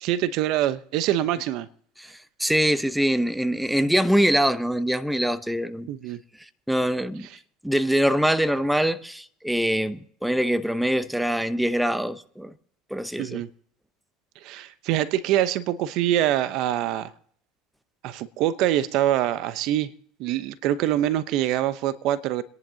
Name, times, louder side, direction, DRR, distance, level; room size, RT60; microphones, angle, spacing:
voice 1, 0.0-1.7 5.9-6.2 13.2-13.5 14.4-17.1 18.0-19.9 20.2-22.4, right 12 dB, 65° right, 0.8 m, -24 dB
voice 2, 2.0-5.9 6.7-7.3 7.6-12.5 12.9-13.4, equal, 5° right, 0.8 m, -24 dB
29.5 x 11.0 x 2.8 m
supercardioid pair, 105°, 0 cm